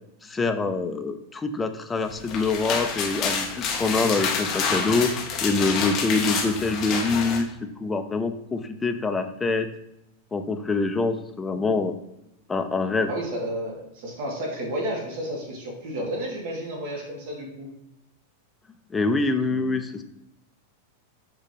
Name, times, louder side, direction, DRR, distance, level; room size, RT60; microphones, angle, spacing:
voice 1, 0.2-9.7 10.3-11.9 12.5-13.1 18.9-20.0, left 3 dB, 10° left, 7 dB, 0.3 m, -25 dB
sound 1, 2.1-7.4, left 5 dB, 25° left, 0.7 m, -28 dB
voice 2, 13.1-17.7, right 1 dB, 45° right, 0 dB, 1.6 m, -31 dB
6.6 x 3.0 x 5.0 m, 0.84 s
supercardioid pair, 180°, 0 cm